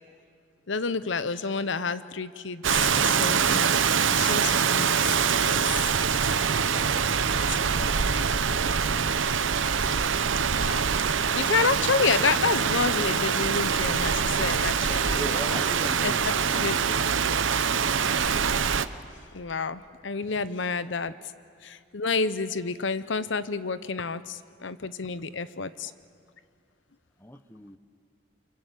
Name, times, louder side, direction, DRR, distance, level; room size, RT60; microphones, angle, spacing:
voice 1, 0.7-5.7 7.5-7.6 9.9-10.1 10.5-10.9 11.3-15.2 16.0-17.0 19.3-21.1 21.6-25.9, left 4 dB, 75° left, 14 dB, 0.8 m, -29 dB
Rain, 2.6-18.8, right 6 dB, 85° right, 0.9 m, -24 dB
voice 2, 7.5-8.5 12.2-12.3 15.1-16.9 25.8-25.9 27.2-27.8, left 1 dB, 10° left, 11 dB, 0.9 m, -41 dB
28.5 x 24.5 x 8.3 m, 2.3 s
head